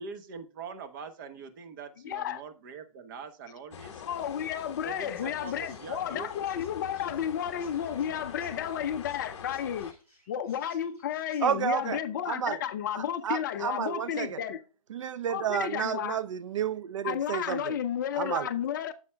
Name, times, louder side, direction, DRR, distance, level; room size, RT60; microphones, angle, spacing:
voice 1, 0.0-4.1 4.8-6.6, right 5 dB, 35° right, 1.0 m, -43 dB
voice 2, 2.0-2.4 4.0-9.9 10.3-14.6 15.3-16.2 17.0-18.9, left 9 dB, 35° left, 0.5 m, -32 dB
sound 1, 3.7-9.9, left 8 dB, 50° left, 0.9 m, -45 dB
Chirp tweet, 4.4-11.5, equal, 10° right, 2.1 m, -62 dB
voice 3, 11.4-12.0 12.3-12.6 12.9-14.4 14.9-17.7 18.1-18.5, right 8 dB, 55° right, 0.4 m, -31 dB
9.6 x 7.1 x 2.2 m
hypercardioid pair, 150°, 19 cm